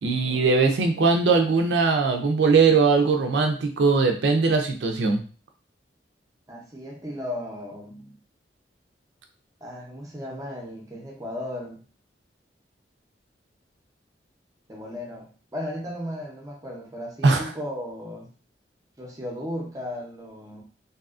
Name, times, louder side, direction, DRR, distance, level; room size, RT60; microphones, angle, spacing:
voice 1, 0.0-5.2 17.2-17.5, right 4 dB, 85° right, 4 dB, 0.4 m, -20 dB
voice 2, 6.5-8.2 9.6-11.8 14.7-18.3 19.0-20.6, left 1 dB, 20° right, 0 dB, 0.6 m, -36 dB
2.7 x 2.3 x 2.4 m, 0.38 s
head